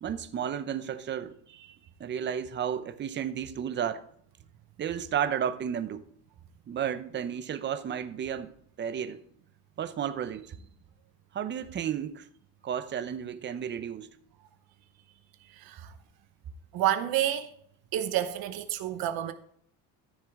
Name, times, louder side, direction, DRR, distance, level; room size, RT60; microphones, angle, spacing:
voice 1, 0.0-4.0 4.8-6.1 6.7-9.2 9.8-10.6 11.3-12.3 12.6-14.2, right 8 dB, 25° right, 0.6 m, -33 dB
voice 2, 15.5-15.9 16.7-17.5 17.9-19.3, right 12 dB, 60° right, 0.9 m, -29 dB
13.5 x 6.9 x 3.6 m
cardioid pair, 150°, 41 cm